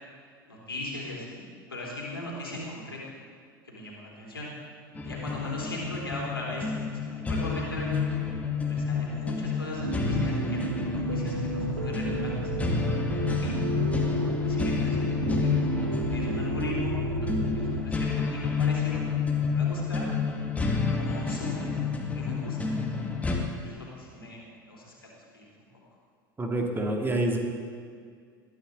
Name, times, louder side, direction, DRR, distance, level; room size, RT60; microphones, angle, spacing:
voice 1, 0.5-1.4 1.7-3.0 3.6-4.5 5.0-6.7 7.0-8.2 8.6-13.0 13.2-13.6 14.4-19.0 19.5-20.0 20.8-22.8 23.6-24.4 24.7-25.5, left 2 dB, 80° left, -3 dB, 3.4 m, -39 dB
sound 1, 5.0-23.4, left 5 dB, 10° left, 2.1 m, -29 dB
sound 2, 9.8-17.8, right 3 dB, 80° right, 1.2 m, -31 dB
voice 2, 26.4-27.4, right 1 dB, 15° right, 1 dB, 2.2 m, -27 dB
20.5 x 13.5 x 4.0 m, 2.1 s
figure-of-eight pair, 75°, 12 cm